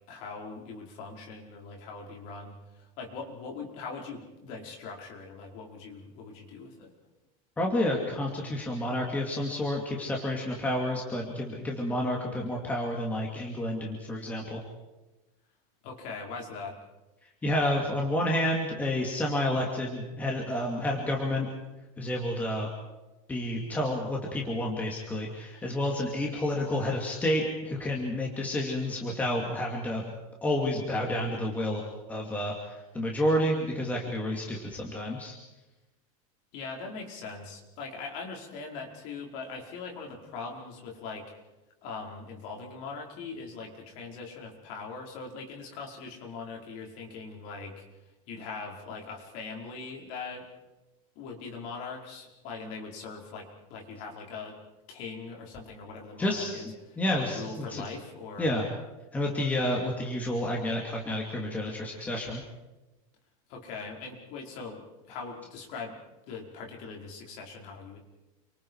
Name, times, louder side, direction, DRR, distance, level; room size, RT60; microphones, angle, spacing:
voice 1, 0.1-6.9 15.8-16.8 36.5-41.3 41.8-47.8 48.3-50.5 51.1-54.6 54.9-56.7 57.1-58.5 63.5-64.8 65.1-66.0 66.3-68.0, left 4 dB, 40° left, 1 dB, 5.0 m, -41 dB
voice 2, 7.6-14.6 17.4-21.5 22.0-22.7 23.3-30.1 30.4-35.3 56.2-56.5 57.0-57.8 58.4-58.6 59.1-62.4, left 1 dB, 10° left, -1 dB, 2.6 m, -30 dB
29.0 x 25.5 x 4.9 m, 1.1 s
supercardioid pair, 180°, 18 cm